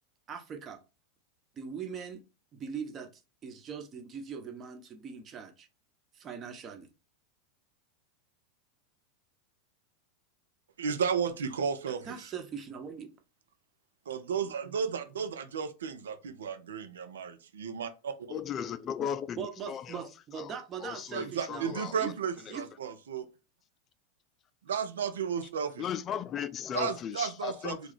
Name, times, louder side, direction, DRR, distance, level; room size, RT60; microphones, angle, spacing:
voice 1, 0.3-0.8 1.6-2.2 2.5-5.7 6.1-6.9 12.0-13.1 19.4-22.1 22.5-22.6, right 7 dB, 35° right, 1.0 m, -41 dB
voice 2, 10.8-12.3 14.1-18.4 21.1-23.2 24.7-25.8 26.7-27.8, right 6 dB, 85° right, 0.7 m, -33 dB
voice 3, 18.3-20.1 20.3-21.9 25.8-27.8, left 9 dB, 35° left, 0.3 m, -37 dB
3.2 x 2.3 x 4.0 m
hypercardioid pair, 100°, 0 cm